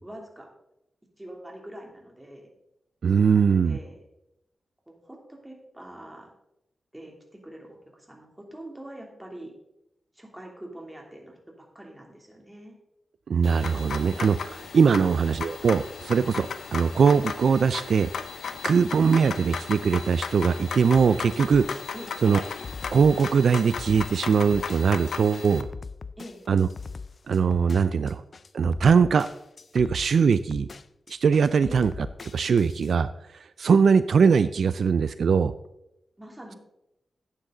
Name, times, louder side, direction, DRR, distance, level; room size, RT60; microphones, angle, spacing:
voice 1, 0.0-0.5 1.2-2.5 3.3-4.0 4.9-6.3 6.9-7.2 7.4-9.5 10.1-12.7 15.0-15.2 21.9-22.1 26.2-26.4 31.6-31.8 36.2-36.6, right 1 dB, 10° right, 0 dB, 3.0 m, -44 dB
voice 2, 3.0-3.8 13.3-18.1 18.6-21.7 22.2-22.4 22.9-25.6 26.5-26.7 27.3-28.2 28.5-29.3 29.7-30.7 31.1-31.9 32.3-33.1 33.6-35.5, right 6 dB, 75° right, 13 dB, 0.4 m, -21 dB
sound 1, 13.4-25.6, left 6 dB, 85° left, 0.7 m, -36 dB
sound 2, 20.9-32.9, left 4 dB, 50° left, 0.4 m, -41 dB
12.0 x 9.0 x 3.9 m, 0.84 s
wide cardioid pair, 85°, 0 cm